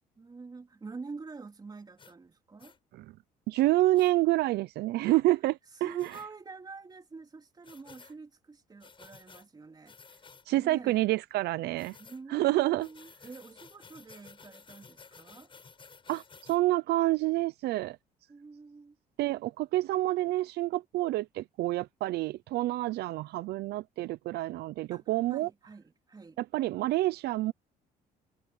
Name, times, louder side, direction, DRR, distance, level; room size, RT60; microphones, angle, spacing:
voice 1, 0.2-2.8 5.0-5.2 5.7-10.0 10.5-11.0 12.0-15.5 18.3-19.0 24.9-26.4, right 4 dB, 25° right, 3.5 m, -47 dB
sound 1, 2.0-2.1 2.6-2.8 3.9-4.1 6.0-6.3 7.6-8.1 8.8-9.5 9.9-10.5 11.8-12.2 12.8-16.6, left 5 dB, 30° left, 5.6 m, -54 dB
voice 2, 3.5-5.5 5.8-6.1 10.5-11.9 12.3-12.9 16.1-18.0 19.2-25.5 26.4-27.5, right 17 dB, 75° right, 0.6 m, -28 dB
cardioid pair, 110°, 17 cm